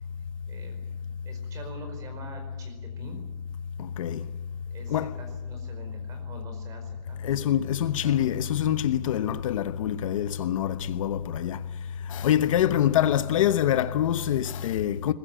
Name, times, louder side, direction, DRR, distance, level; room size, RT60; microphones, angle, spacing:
voice 1, 0.5-3.2 4.7-8.2, right 2 dB, 15° right, 4.8 m, -46 dB
voice 2, 3.8-4.2 4.9-5.1 7.2-11.6 12.1-15.1, left 10 dB, 55° left, 1.0 m, -25 dB
21.5 x 21.0 x 8.9 m
supercardioid pair, 175°, 20 cm